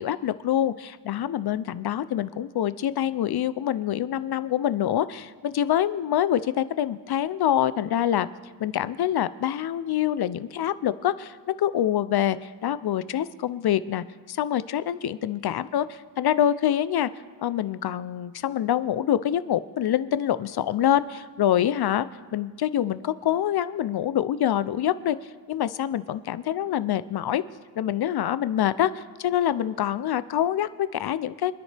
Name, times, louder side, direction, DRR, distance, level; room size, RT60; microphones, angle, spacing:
voice 1, 0.0-8.3 8.6-17.1 17.4-22.1 22.3-25.2 25.5-27.4 27.8-31.5, left 11 dB, 55° left, 15 dB, 0.5 m, -25 dB
27.0 x 10.0 x 3.4 m, 1.5 s
wide cardioid pair, 160°, 45 cm